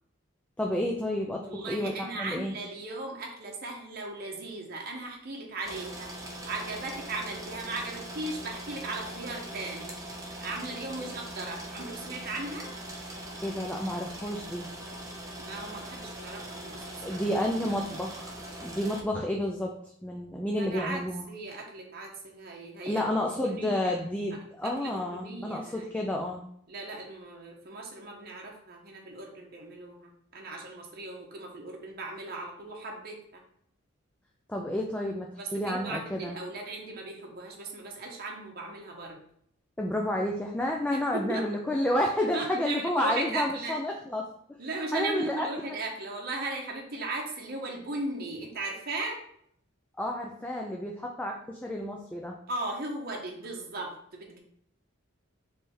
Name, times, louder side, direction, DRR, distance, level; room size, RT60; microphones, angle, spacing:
voice 1, 0.6-2.5 13.4-14.7 17.0-21.2 22.9-26.4 34.5-36.3 39.8-44.6 44.9-45.5 50.0-52.4, left 1 dB, 5° left, 0 dB, 0.3 m, -30 dB
voice 2, 1.4-6.1 6.5-10.0 10.4-12.8 15.4-17.4 17.9-18.0 20.6-21.0 21.3-24.0 24.6-25.9 26.7-33.4 35.4-39.2 40.9-41.5 42.3-43.8 44.6-49.2 52.5-54.4, right 2 dB, 50° right, -1 dB, 0.8 m, -37 dB
sound 1, 5.6-19.0, right 1 dB, 15° right, 0.7 m, -41 dB
3.5 x 3.3 x 4.3 m, 0.66 s
head